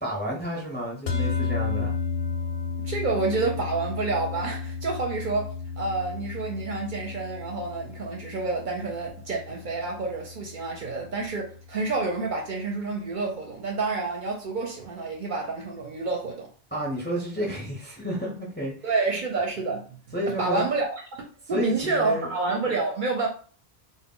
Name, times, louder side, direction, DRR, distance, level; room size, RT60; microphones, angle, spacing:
voice 1, 0.0-2.0 16.7-18.9 20.1-20.6 21.5-22.3, equal, 15° left, 0.5 m, -31 dB
sound 1, 1.1-11.5, left 5 dB, 60° left, 0.6 m, -33 dB
voice 2, 2.8-16.5 18.8-20.0 20.4-21.2 21.5-23.3, right 3 dB, 60° right, 0.6 m, -28 dB
2.1 x 2.1 x 3.6 m
omnidirectional pair, 1.1 m